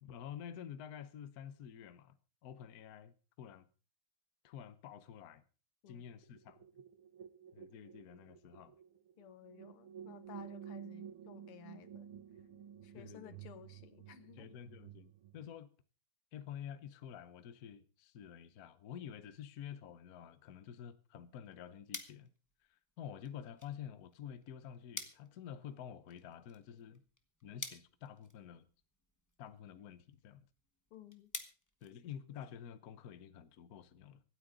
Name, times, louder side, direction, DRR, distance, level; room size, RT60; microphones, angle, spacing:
voice 1, 0.0-2.1 2.4-3.7 4.4-5.4 5.9-6.6 7.5-8.7 12.9-13.4 14.4-15.7 16.3-22.3 22.7-27.0 27.4-28.7 29.4-30.5 31.8-34.2, left 9 dB, 55° left, 1.2 m, -49 dB
sound 1, 5.9-15.5, right 8 dB, 75° right, 1.8 m, -52 dB
voice 2, 9.2-12.1 12.8-14.5 30.9-31.3, left 11 dB, 85° left, 1.9 m, -56 dB
sound 2, 21.3-32.6, left 2 dB, 15° left, 0.8 m, -52 dB
25.0 x 8.9 x 3.9 m
omnidirectional pair, 2.4 m